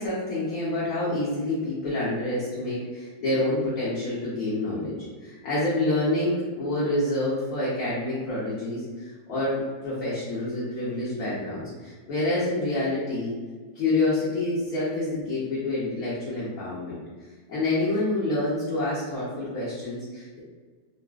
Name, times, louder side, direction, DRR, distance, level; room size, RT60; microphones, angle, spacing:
voice 1, 0.0-13.3 13.7-17.0 17.5-20.4, left 2 dB, 60° left, -9 dB, 1.2 m, -27 dB
3.9 x 2.1 x 2.3 m, 1.5 s
omnidirectional pair, 2.1 m